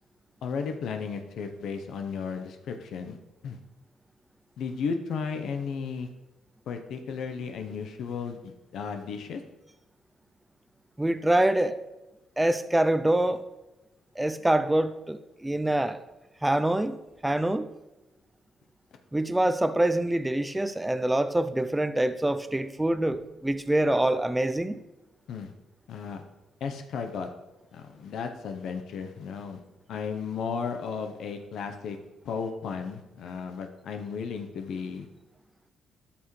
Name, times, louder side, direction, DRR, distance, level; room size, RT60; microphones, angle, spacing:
voice 1, 0.4-3.2 3.4-3.6 4.6-6.1 6.7-9.4 25.3-25.5 25.9-26.2 26.6-27.3 27.7-29.6 29.9-32.0 32.2-35.1, left 5 dB, 75° left, 6 dB, 0.8 m, -34 dB
voice 2, 11.0-11.8 12.4-13.4 14.2-16.0 16.4-17.0 17.2-17.7 19.1-24.8, right 1 dB, 10° right, 11 dB, 0.5 m, -25 dB
12.5 x 5.9 x 3.2 m, 1.0 s
cardioid pair, 90°, 0 cm